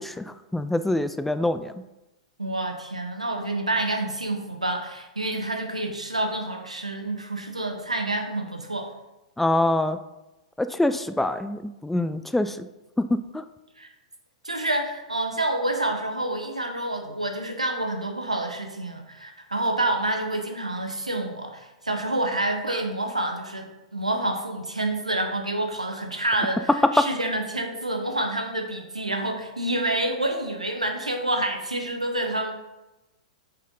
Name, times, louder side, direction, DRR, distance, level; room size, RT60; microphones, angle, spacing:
voice 1, 0.0-1.7 9.4-10.0 10.6-12.7 13.0-13.4 26.7-27.1, left 1 dB, 5° left, 11 dB, 0.3 m, -24 dB
voice 2, 2.4-8.9 13.8-13.9 14.4-32.5, right 1 dB, 90° right, 4 dB, 1.0 m, -28 dB
8.0 x 4.4 x 3.7 m, 1.0 s
figure-of-eight pair, 105°, 4 cm